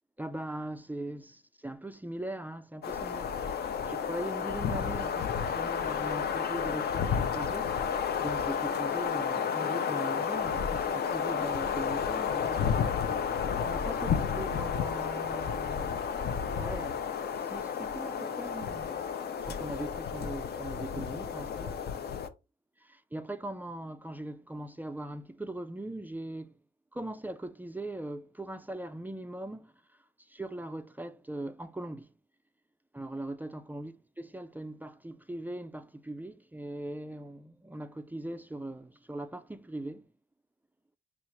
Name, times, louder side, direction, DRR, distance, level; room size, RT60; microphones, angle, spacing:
voice 1, 0.2-7.9 8.2-12.8 13.6-16.0 16.6-17.1 17.4-19.1 19.4-21.8 22.8-26.5 26.9-32.1 32.9-40.1, right 1 dB, 10° right, 0.3 m, -40 dB
sound 1, 2.8-22.3, left 7 dB, 55° left, 0.6 m, -31 dB
5.5 x 2.4 x 3.0 m
cardioid pair, 90°, 20 cm